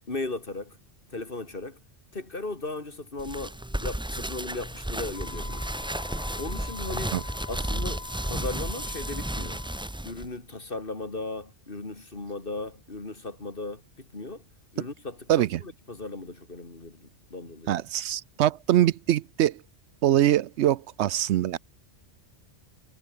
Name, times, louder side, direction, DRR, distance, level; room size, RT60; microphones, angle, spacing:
voice 1, 0.1-0.8 1.1-1.8 2.1-5.7 6.4-7.2 7.5-9.6 10.0-14.4 14.7-17.7, left 2 dB, 50° left, 3.2 m, -37 dB
sound 1, 3.2-10.3, right 1 dB, 5° right, 0.6 m, -33 dB
Wind instrument woodwind instrument, 5.1-9.9, left 5 dB, 70° left, 2.0 m, -45 dB
voice 2, 15.3-15.6 17.7-19.6 20.0-21.6, right 12 dB, 75° right, 0.8 m, -23 dB
omnidirectional pair, 1.2 m